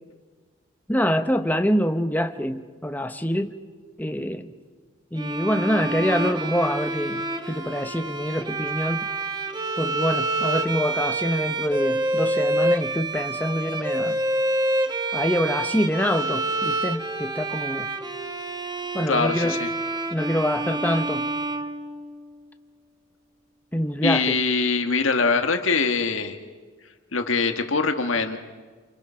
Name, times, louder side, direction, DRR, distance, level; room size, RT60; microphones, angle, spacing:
voice 1, 0.9-3.5 4.0-4.5 5.1-9.0 9.8-14.2 15.1-17.9 18.9-19.6 20.1-21.3 23.7-24.4, equal, 10° left, 7 dB, 0.9 m, -25 dB
Bowed string instrument, 5.2-22.4, right 2 dB, 20° right, 1.3 m, -27 dB
voice 2, 19.1-19.7 24.0-26.4 27.1-28.4, left 4 dB, 85° left, 6 dB, 1.7 m, -23 dB
28.5 x 27.5 x 5.8 m, 1.5 s
head